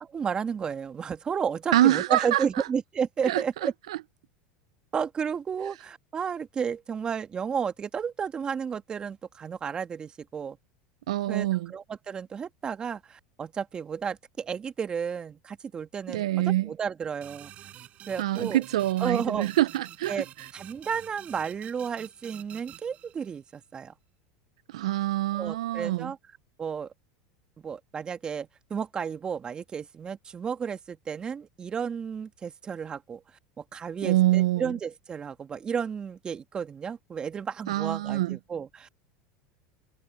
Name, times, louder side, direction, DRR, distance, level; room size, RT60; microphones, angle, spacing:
voice 1, 0.0-3.7 4.9-10.6 11.3-17.5 18.1-18.6 19.0-19.5 20.1-20.3 20.5-23.9 25.3-26.2 26.6-26.9 27.6-33.2 33.6-39.1, right 7 dB, 30° right, 1.8 m, -32 dB
voice 2, 1.7-2.6 3.2-4.0 11.1-11.7 16.1-16.7 18.2-20.5 24.7-26.1 34.0-34.7 37.7-38.4, right 15 dB, 85° right, 0.4 m, -25 dB
sound 1, 17.2-23.6, right 12 dB, 45° right, 6.9 m, -48 dB
supercardioid pair, 105°, 3 cm